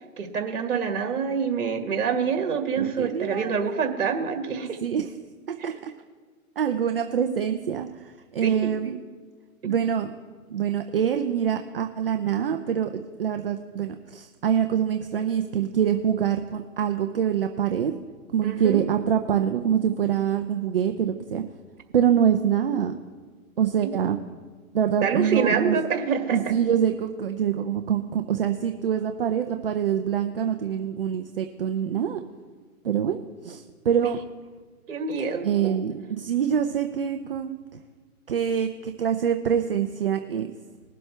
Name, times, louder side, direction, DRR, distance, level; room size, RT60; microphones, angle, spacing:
voice 1, 0.0-4.8 5.6-5.7 8.4-8.5 9.6-9.7 18.4-18.9 23.8-24.0 25.0-26.5 34.9-35.8, right 6 dB, 60° right, 4 dB, 1.9 m, -26 dB
voice 2, 2.8-3.5 4.6-5.1 5.5-5.9 6.6-9.0 9.6-10.1 10.5-17.9 18.3-21.4 21.9-22.9 23.6-24.2 24.7-25.8 26.3-32.2 32.8-34.2 35.4-37.6 38.3-40.5, right 8 dB, 40° right, 6 dB, 0.6 m, -25 dB
20.5 x 7.7 x 3.3 m, 1.5 s
hypercardioid pair, 155°, 43 cm